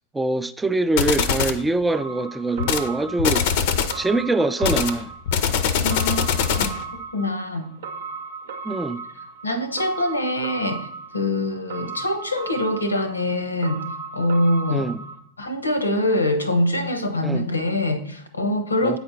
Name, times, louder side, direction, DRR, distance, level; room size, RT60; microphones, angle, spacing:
voice 1, 0.1-3.4 3.9-5.1 8.6-9.0 14.7-15.0 17.2-17.4 18.8-19.0, right 2 dB, 10° right, 0.4 m, -23 dB
sound 1, 1.0-1.6 2.6-2.9 3.2-4.0 4.6-6.8, left 7 dB, 50° left, 0.6 m, -22 dB
sound 2, 1.9-15.2, right 4 dB, 60° right, 0.7 m, -37 dB
voice 2, 5.8-7.7 9.4-10.9 11.1-13.8 14.1-14.9 15.4-19.0, left 1 dB, 80° left, 0.8 m, -24 dB
8.5 x 5.0 x 3.9 m
figure-of-eight pair, 90°, 0 cm